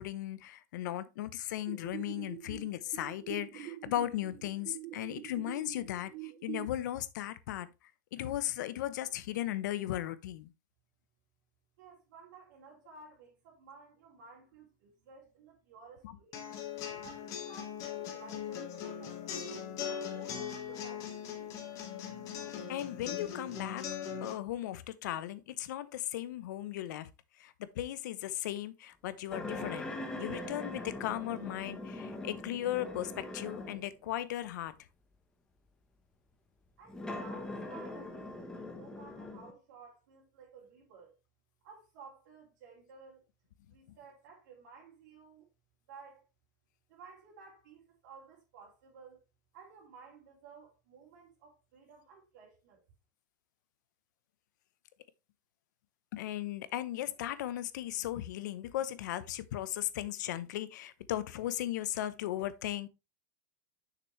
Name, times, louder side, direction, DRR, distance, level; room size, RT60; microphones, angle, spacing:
voice 1, 0.0-7.7 8.1-10.5 16.0-16.2 19.2-19.3 22.7-23.9 24.2-27.1 27.4-29.9 30.2-34.7 56.1-62.9, left 13 dB, 70° left, 0.8 m, -37 dB
sound 1, 1.7-6.7, right 15 dB, 40° right, 0.7 m, -45 dB
voice 2, 11.8-16.4 16.9-19.5 19.9-21.6 36.8-41.1 41.6-43.2 43.7-45.5 45.9-46.2 46.9-49.2 49.5-52.8, right 5 dB, 70° right, 2.6 m, -55 dB
sound 2, 16.3-24.3, left 8 dB, 35° left, 1.8 m, -40 dB
sound 3, 29.3-34.0 34.7-34.8 36.9-39.5, left 2 dB, 5° left, 1.0 m, -42 dB
6.8 x 6.0 x 3.1 m
supercardioid pair, 160°, 10 cm